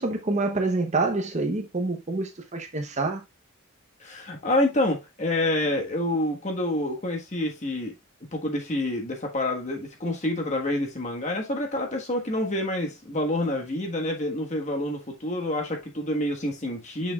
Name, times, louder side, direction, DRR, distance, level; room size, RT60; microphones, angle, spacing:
voice 1, 0.0-3.2, right 3 dB, 35° right, 0.8 m, -27 dB
voice 2, 4.0-8.0 8.3-17.1, left 1 dB, 35° left, 1.4 m, -27 dB
6.7 x 6.3 x 2.3 m
head